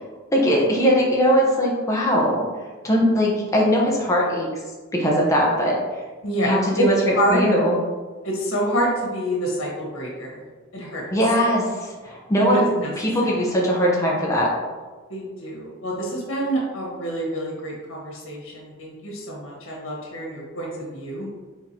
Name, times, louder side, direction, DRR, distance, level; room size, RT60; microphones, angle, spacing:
voice 1, 0.3-2.4 2.8-4.5 4.9-5.8 6.4-7.7 11.1-12.7 13.0-14.5, equal, 15° left, -3 dB, 1.0 m, -20 dB
voice 2, 6.2-6.9 7.1-7.5 8.2-10.4 10.7-11.1 12.5-12.9 15.1-21.3, equal, 85° left, -3 dB, 1.5 m, -27 dB
4.5 x 3.9 x 2.9 m, 1.3 s
head